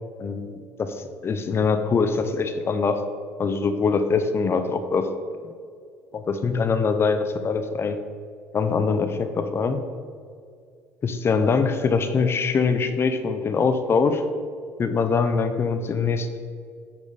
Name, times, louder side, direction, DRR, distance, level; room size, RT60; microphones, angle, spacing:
voice 1, 0.2-3.0 3.4-5.1 6.1-8.0 8.5-9.8 11.0-14.2 14.8-16.3, left 5 dB, 35° left, 9 dB, 0.6 m, -23 dB
8.8 x 5.1 x 4.0 m, 2.2 s
supercardioid pair, 90°, 7 cm